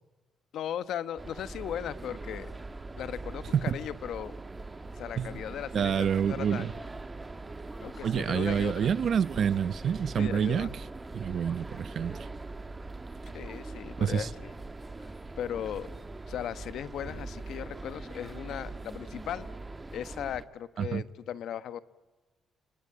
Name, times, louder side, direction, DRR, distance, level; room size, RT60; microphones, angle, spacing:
voice 1, 0.5-2.5 3.0-4.3 5.0-6.8 7.8-8.9 10.2-10.7 13.3-14.5 15.4-15.9 16.3-19.5 19.9-21.8, left 10 dB, 75° left, 1.1 m, -37 dB
sound 1, 1.2-20.4, right 2 dB, 20° right, 1.9 m, -42 dB
voice 2, 5.7-6.7 8.0-10.7 11.1-12.3 14.0-14.3 20.8-21.0, right 7 dB, 55° right, 0.9 m, -27 dB
30.0 x 20.5 x 8.8 m
cardioid pair, 90°, 0 cm